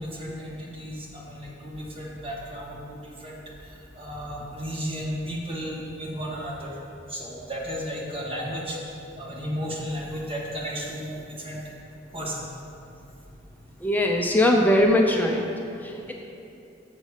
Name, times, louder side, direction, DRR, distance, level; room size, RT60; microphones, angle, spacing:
voice 1, 0.0-3.4 3.9-6.8 7.1-8.8 9.2-11.6 12.1-12.4, equal, 30° right, -4 dB, 1.5 m, -34 dB
voice 2, 13.8-15.5 15.8-16.1, left 1 dB, 10° left, 1 dB, 0.5 m, -21 dB
6.7 x 6.3 x 4.9 m, 2.8 s
head